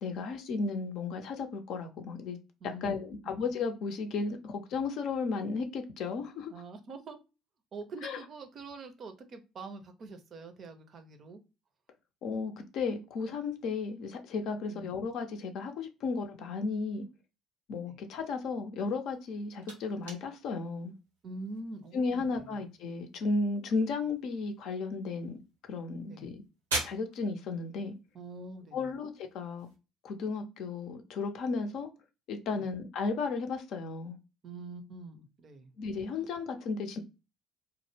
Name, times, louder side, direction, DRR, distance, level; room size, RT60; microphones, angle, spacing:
voice 1, 0.0-2.4 2.6-6.5 8.0-8.2 12.2-17.1 17.7-20.9 21.9-25.4 25.7-26.4 26.8-27.9 28.7-29.7 30.0-31.9 32.3-34.2 35.8-37.0, left 4 dB, 60° left, 0.5 m, -34 dB
voice 2, 2.6-3.0 6.5-7.2 7.7-11.4 14.7-14.9 17.9-18.0 21.2-22.6 26.1-26.3 28.1-28.9 32.5-32.6 34.4-35.7 36.2-36.3, right 3 dB, 45° right, 0.5 m, -45 dB
sound 1, 19.0-29.8, right 2 dB, 85° right, 0.7 m, -44 dB
2.1 x 2.0 x 3.1 m
hypercardioid pair, 55°, 0 cm